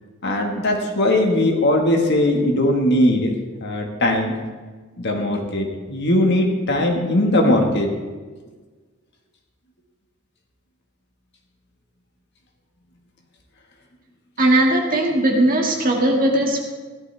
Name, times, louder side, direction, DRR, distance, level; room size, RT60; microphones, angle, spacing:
voice 1, 0.2-3.3 3.6-4.3 5.0-7.9, left 1 dB, 60° left, 2 dB, 1.7 m, -19 dB
voice 2, 14.4-16.6, right 1 dB, 45° right, 0 dB, 2.1 m, -18 dB
15.5 x 11.5 x 3.4 m, 1.4 s
head